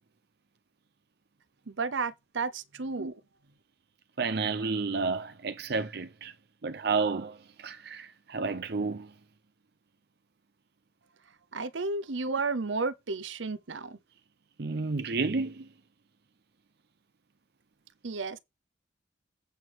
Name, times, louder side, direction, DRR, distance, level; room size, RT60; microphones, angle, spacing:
voice 1, 1.7-3.2 11.5-14.0 18.0-18.4, right 4 dB, 90° right, 0.8 m, -32 dB
voice 2, 4.2-6.3 6.6-9.1 12.2-12.3 14.6-15.7, right 4 dB, 60° right, 0.7 m, -31 dB
8.3 x 4.4 x 6.2 m
head